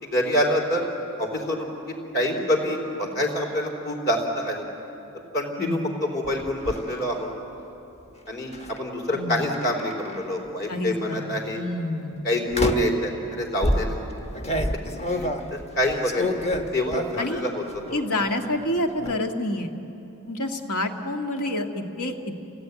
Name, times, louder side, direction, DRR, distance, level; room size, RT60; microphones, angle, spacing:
voice 1, 0.0-0.8 1.2-4.6 5.3-7.3 8.3-11.6 12.2-14.0 15.0-16.3 16.5-17.6 17.9-18.0, left 1 dB, 50° left, 2 dB, 3.9 m, -26 dB
sound 1, 6.2-6.8 8.5-8.8 9.5-10.4 11.1-11.4 12.5-13.0 13.6-17.4 17.7-18.3 18.5-19.1, left 1 dB, 30° left, 1.2 m, -28 dB
voice 2, 9.1-9.5 10.7-11.3 11.6-12.2 17.2-17.4 17.9-19.7 20.3-22.2, left 1 dB, 85° left, 3 dB, 1.9 m, -28 dB
28.5 x 17.5 x 9.4 m, 3.0 s
head